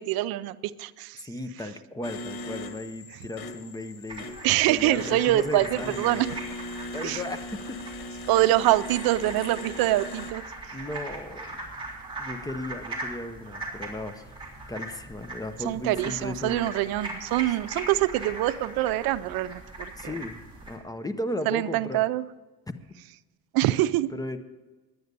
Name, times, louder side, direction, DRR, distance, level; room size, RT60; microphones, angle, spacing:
voice 1, 0.0-1.2 4.4-6.3 7.0-7.2 8.3-10.4 15.6-20.1 21.5-22.2 23.5-24.1, right 15 dB, 80° right, 15 dB, 0.5 m, -25 dB
voice 2, 1.2-4.3 4.7-6.2 6.9-7.8 10.7-11.4 12.2-14.3 14.7-16.7 19.9-20.4 20.7-22.0 23.8-24.4, left 1 dB, 10° left, 9 dB, 0.7 m, -35 dB
sound 1, 2.0-10.3, left 1 dB, 85° left, 1.4 m, -40 dB
sound 2, 4.1-20.8, right 2 dB, 15° right, 3.5 m, -40 dB
11.0 x 9.5 x 6.7 m, 1.2 s
cardioid pair, 125°, 35 cm